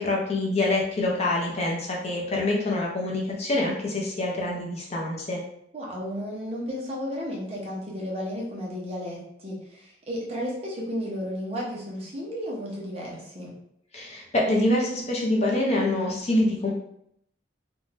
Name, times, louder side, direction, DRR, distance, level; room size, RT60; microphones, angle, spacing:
voice 1, 0.0-5.4 13.9-16.7, left 2 dB, 35° left, -3 dB, 0.6 m, -25 dB
voice 2, 5.7-13.5, equal, 35° right, -4 dB, 0.8 m, -33 dB
2.6 x 2.2 x 3.2 m, 0.72 s
head